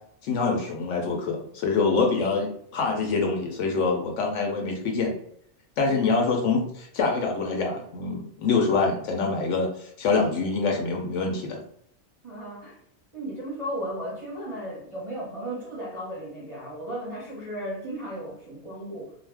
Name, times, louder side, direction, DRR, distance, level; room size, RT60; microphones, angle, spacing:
voice 1, 0.2-5.2 5.8-11.6, left 4 dB, 70° left, 1 dB, 0.9 m, -25 dB
voice 2, 5.8-6.3 12.2-12.8 13.1-19.1, equal, 30° right, -6 dB, 0.7 m, -35 dB
2.5 x 2.1 x 3.3 m, 0.69 s
omnidirectional pair, 1.4 m